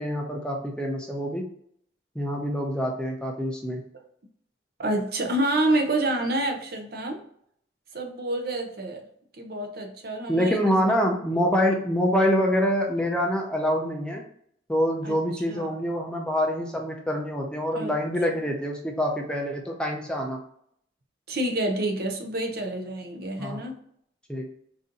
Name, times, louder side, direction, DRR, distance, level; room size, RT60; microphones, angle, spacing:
voice 1, 0.0-1.4 2.2-3.8 10.3-14.2 14.7-20.4 23.4-23.6 24.3-24.5, equal, 5° left, 0 dB, 0.5 m, -26 dB
voice 2, 4.8-7.2 7.9-9.1 9.4-11.0 15.0-15.8 17.7-17.9 21.3-23.8, right 1 dB, 50° right, 4 dB, 0.6 m, -28 dB
4.1 x 2.6 x 3.8 m, 0.67 s
head